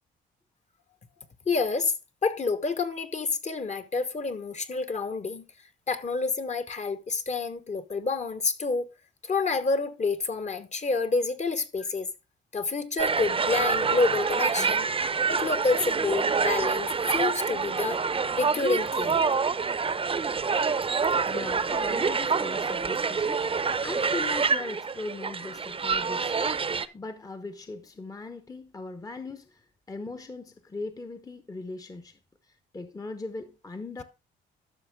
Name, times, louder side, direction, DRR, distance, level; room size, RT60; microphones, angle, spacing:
voice 1, 1.5-1.9 2.2-5.4 5.9-8.9 9.2-12.1 12.5-14.9 15.3-18.0 18.4-19.2, left 4 dB, 35° left, 1.2 m, -28 dB
sound 1, 13.0-26.8, right 5 dB, 25° right, 0.7 m, -27 dB
voice 2, 21.2-34.0, left 3 dB, 20° left, 0.9 m, -39 dB
13.0 x 5.8 x 3.6 m
cardioid pair, 90°, 20 cm